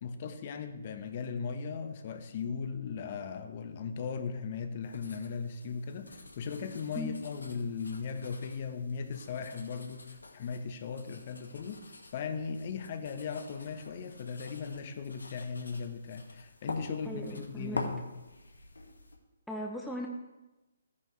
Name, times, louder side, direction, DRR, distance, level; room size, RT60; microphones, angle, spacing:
voice 1, 0.0-18.0, left 5 dB, 40° left, 7 dB, 1.2 m, -38 dB
sound 1, 4.8-19.2, left 2 dB, 85° left, 1.9 m, -47 dB
voice 2, 17.1-17.9 19.5-20.1, left 1 dB, ahead, -2 dB, 0.9 m, -38 dB
14.5 x 9.9 x 3.3 m, 1.0 s
figure-of-eight pair, 140°, 0 cm